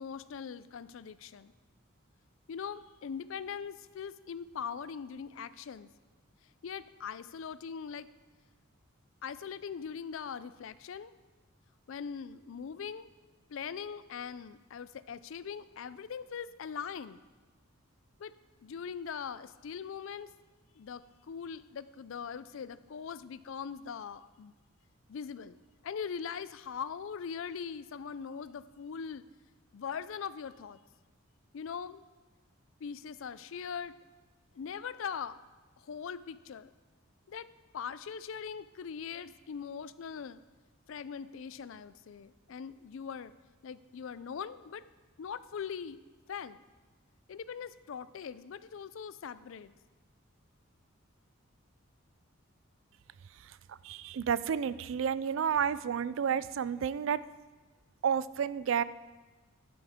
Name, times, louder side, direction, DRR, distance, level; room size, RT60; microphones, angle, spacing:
voice 1, 0.0-1.5 2.5-5.9 6.6-8.1 9.2-11.1 11.9-13.1 13.5-17.2 18.2-18.3 18.6-20.3 20.8-24.5 25.1-25.6 25.8-29.2 29.7-30.8 31.5-32.0 32.8-34.0 34.5-35.4 35.8-36.7 37.3-37.5 37.7-40.4 40.9-43.3 43.6-44.8 45.2-46.0 46.3-46.6 47.3-49.7, left 7 dB, 65° left, 16 dB, 0.4 m, -41 dB
voice 2, 53.4-57.2 58.0-58.8, right 7 dB, 65° right, 17 dB, 0.3 m, -31 dB
11.5 x 11.0 x 3.6 m, 1.3 s
head